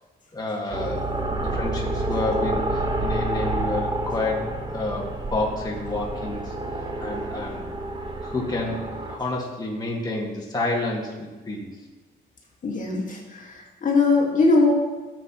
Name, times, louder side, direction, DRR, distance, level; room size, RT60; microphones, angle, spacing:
voice 1, 0.3-4.4 4.7-7.7 8.2-11.7, left 2 dB, 20° left, -2 dB, 1.9 m, -29 dB
sound 1, 0.7-9.2, right 1 dB, 20° right, 1.2 m, -29 dB
voice 2, 12.6-14.7, left 3 dB, 40° left, -1 dB, 1.9 m, -21 dB
12.5 x 7.3 x 3.1 m, 1.2 s
cardioid pair, 90°, 20 cm